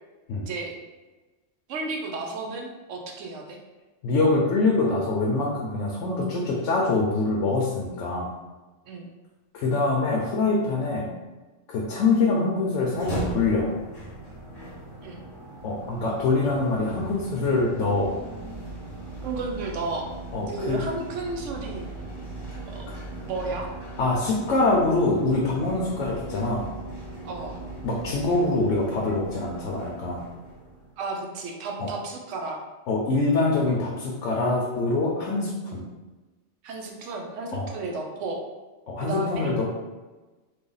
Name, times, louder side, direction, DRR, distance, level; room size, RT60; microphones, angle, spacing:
voice 1, 0.4-0.8 1.7-3.6 8.9-9.1 15.0-15.3 19.2-20.1 20.5-21.9 22.7-23.0 23.3-23.7 27.2-27.5 31.0-32.6 36.6-38.4 39.0-39.5, right 3 dB, 80° right, 1 dB, 1.0 m, -33 dB
voice 2, 4.0-8.3 9.5-11.1 11.7-13.7 15.6-18.2 20.3-20.8 24.0-26.7 27.8-30.3 31.8-31.9 32.9-35.8 37.5-37.7 38.9-39.8, left 3 dB, 75° left, -3 dB, 0.9 m, -24 dB
sound 1, 12.8-31.0, right 2 dB, 25° left, 0.7 m, -38 dB
3.3 x 2.2 x 3.8 m, 1.2 s
omnidirectional pair, 1.3 m